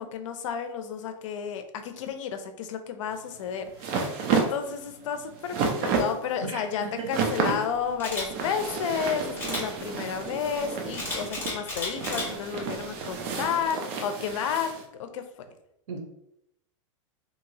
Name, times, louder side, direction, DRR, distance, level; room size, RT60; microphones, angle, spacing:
voice 1, 0.0-15.2, left 7 dB, 70° left, 8 dB, 0.5 m, -32 dB
sound 1, 3.1-14.8, right 5 dB, 40° right, 0.6 m, -31 dB
voice 2, 6.4-7.1 7.5-7.6 15.9-16.0, right 3 dB, 80° right, 3 dB, 0.9 m, -36 dB
Camera, 8.0-8.3 9.4-9.6 10.9-12.3 12.8-13.0, left 2 dB, 15° left, 1.3 m, -33 dB
2.9 x 2.8 x 2.7 m, 0.78 s
supercardioid pair, 140°, 17 cm